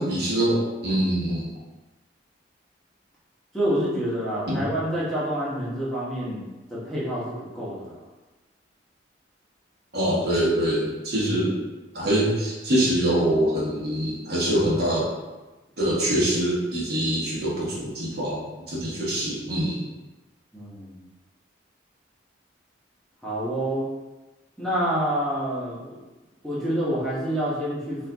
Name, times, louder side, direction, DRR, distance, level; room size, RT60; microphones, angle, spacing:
voice 1, 0.0-1.5 4.5-4.6 9.9-11.6 11.9-15.1 15.8-18.4 18.7-19.8, right 1 dB, 55° right, -6 dB, 1.2 m, -24 dB
voice 2, 3.5-6.4 6.7-7.9 20.5-21.0 23.2-23.9 24.6-26.0 26.4-28.1, right 1 dB, 5° left, -9 dB, 0.9 m, -27 dB
4.3 x 2.5 x 3.4 m, 1.1 s
head